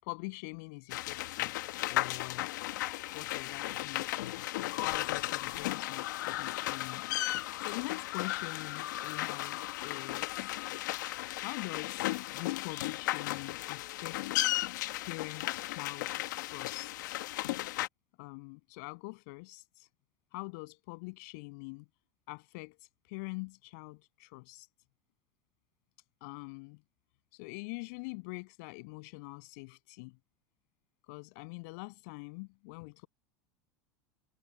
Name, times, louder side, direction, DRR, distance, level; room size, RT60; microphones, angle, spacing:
voice 1, 0.0-2.5 3.1-4.1 4.8-7.0 7.6-10.6 11.4-14.5 15.0-17.2 18.2-19.9 20.3-21.8 22.3-24.7 26.2-26.8 27.3-30.2 31.1-33.1, left 30 dB, 60° left, 7.2 m, -44 dB
sound 1, 0.9-17.9, left 16 dB, 85° left, 1.5 m, -35 dB
supercardioid pair, 150°, 10 cm